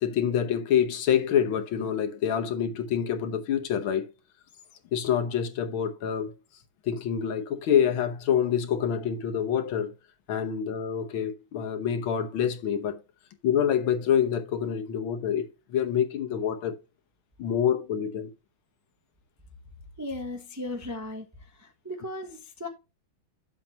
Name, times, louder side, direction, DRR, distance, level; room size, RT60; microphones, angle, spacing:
voice 1, 0.0-4.1 4.9-6.3 6.9-9.9 10.3-13.0 13.4-16.8 17.4-18.3, left 8 dB, 75° left, 1.8 m, -26 dB
voice 2, 20.0-21.2 21.6-22.7, left 1 dB, 20° right, 0.4 m, -36 dB
8.3 x 7.6 x 2.8 m
omnidirectional pair, 2.3 m